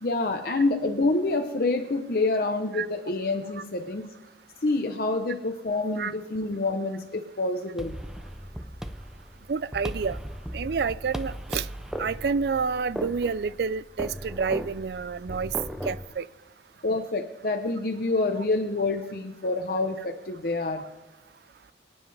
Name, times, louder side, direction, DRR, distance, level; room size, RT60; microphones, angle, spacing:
voice 1, 0.0-4.1 4.6-8.0 16.8-20.9, left 2 dB, 55° left, 5 dB, 0.7 m, -27 dB
sound 1, 7.8-16.1, equal, 5° right, 0.5 m, -37 dB
voice 2, 9.5-10.2 10.5-11.7 12.0-15.5 15.8-16.3, right 5 dB, 60° right, 18 dB, 0.4 m, -28 dB
26.5 x 9.6 x 3.4 m, 1.1 s
head